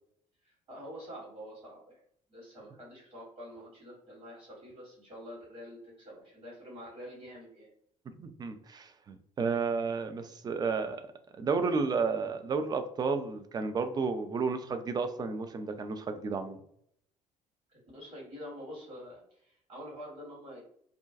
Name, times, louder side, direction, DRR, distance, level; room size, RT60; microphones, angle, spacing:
voice 1, 0.4-1.9 2.3-7.7 10.1-10.3 17.7-20.6, equal, 45° right, -5 dB, 1.4 m, -47 dB
voice 2, 8.2-11.0 11.4-16.6, right 4 dB, 25° right, 8 dB, 0.4 m, -32 dB
2.4 x 2.2 x 2.5 m, 0.67 s
figure-of-eight pair, 55°, 18 cm